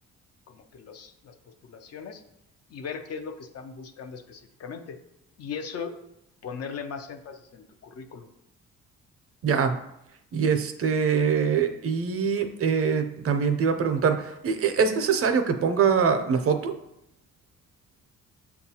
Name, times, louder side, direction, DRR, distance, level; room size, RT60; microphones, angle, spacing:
voice 1, 0.5-1.3 1.6-2.2 2.7-5.0 5.4-5.9 6.4-8.3, left 6 dB, 55° left, 6 dB, 0.5 m, -38 dB
voice 2, 9.4-9.8 10.3-16.7, right 6 dB, 50° right, 7 dB, 0.5 m, -23 dB
6.7 x 2.3 x 2.8 m, 0.81 s
cardioid pair, 90°, 30 cm